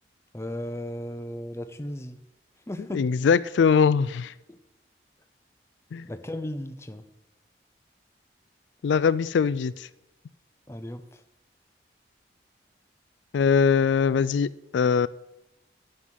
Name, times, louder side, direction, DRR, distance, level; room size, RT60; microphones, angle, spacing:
voice 1, 0.3-2.2 2.7-3.1 4.5-4.6 6.0-7.1 10.7-11.2, left 1 dB, 15° left, 9 dB, 0.7 m, -36 dB
voice 2, 2.9-4.3 5.9-6.0 8.8-9.9 13.3-15.1, left 6 dB, 80° left, 18 dB, 0.3 m, -22 dB
9.9 x 7.9 x 7.4 m, 0.93 s
head